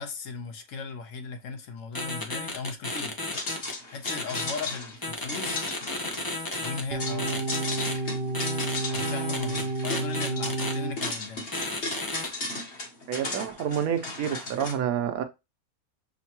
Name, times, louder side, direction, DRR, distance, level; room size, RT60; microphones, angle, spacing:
voice 1, 0.0-3.2 3.9-5.7 6.6-8.2 8.9-11.5, left 4 dB, 70° left, 1.1 m, -38 dB
sound 1, 1.9-3.7 4.0-4.6 5.0-6.8 7.2-7.9 8.3-10.7 11.0-11.1 11.5-12.3, left 2 dB, 25° left, 0.4 m, -33 dB
sound 2, 3.3-14.7, left 3 dB, 55° left, 1.4 m, -36 dB
sound 3, 6.9-11.0, right 3 dB, 65° right, 0.6 m, -30 dB
voice 2, 13.1-15.2, right 9 dB, 80° right, 1.1 m, -28 dB
6.4 x 2.2 x 2.8 m
omnidirectional pair, 1.5 m